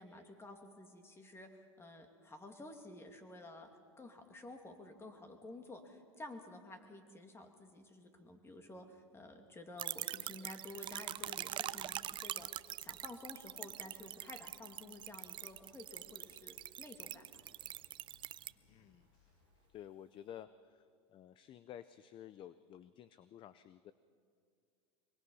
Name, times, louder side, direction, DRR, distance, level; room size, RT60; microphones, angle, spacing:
voice 1, 0.0-3.7 4.0-12.5 12.8-17.4, left 2 dB, 15° left, 5 dB, 2.5 m, -52 dB
sound 1, 9.8-18.5, right 13 dB, 35° right, 0.5 m, -44 dB
sound 2, 11.3-19.7, left 4 dB, 65° left, 7.8 m, -71 dB
voice 2, 18.7-19.1 19.7-23.9, left 10 dB, 35° left, 15 dB, 0.6 m, -53 dB
23.5 x 23.0 x 5.6 m, 2.3 s
supercardioid pair, 115°, 15 cm